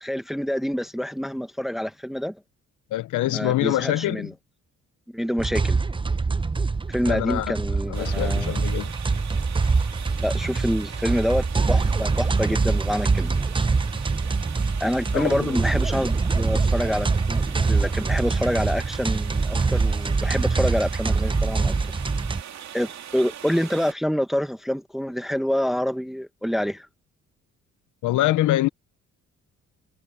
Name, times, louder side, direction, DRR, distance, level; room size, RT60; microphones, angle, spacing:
voice 1, 0.0-2.4 3.3-4.3 5.1-5.8 6.9-8.7 10.2-13.4 14.8-21.7 22.7-26.9, equal, ahead, 1.1 m, -27 dB
voice 2, 2.9-4.3 7.1-7.5 7.9-8.9 15.1-15.6 28.0-28.7, left 15 dB, 80° left, 0.8 m, -24 dB
sound 1, 5.4-22.4, right 4 dB, 15° right, 0.7 m, -24 dB
sound 2, 7.9-23.9, right 9 dB, 65° right, 2.8 m, -41 dB
cardioid pair, 90°, 30 cm